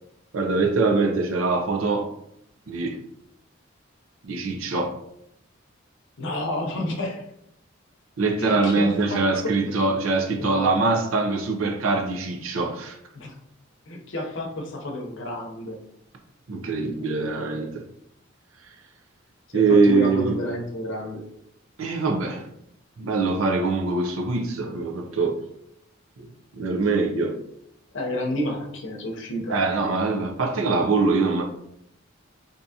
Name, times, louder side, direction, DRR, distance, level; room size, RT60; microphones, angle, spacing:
voice 1, 0.3-2.1 2.7-3.0 4.2-5.0 8.2-13.0 16.5-17.8 19.5-20.4 21.8-22.5 23.0-25.4 26.2-26.3 26.5-27.4 29.5-31.4, right 3 dB, 90° right, 0.6 m, -23 dB
voice 2, 6.2-7.2 8.4-9.8 10.4-10.7 13.1-13.4 13.9-15.8 19.5-21.2 27.9-29.6, left 1 dB, 65° left, 0.7 m, -30 dB
3.5 x 2.7 x 2.7 m
head